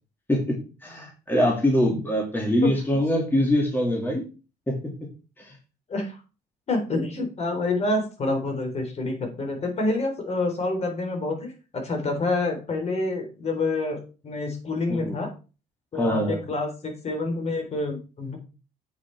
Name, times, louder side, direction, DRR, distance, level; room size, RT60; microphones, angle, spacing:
voice 1, 0.8-4.2 4.7-4.8 5.4-5.5 14.9-15.2 15.9-16.4, left 1 dB, 10° left, 0 dB, 2.5 m, -23 dB
voice 2, 2.6-3.0 5.9-6.2 6.7-15.3 15.9-18.4, left 2 dB, 40° left, 4 dB, 3.6 m, -28 dB
8.6 x 5.8 x 4.6 m, 0.33 s
cardioid pair, 110°, 17 cm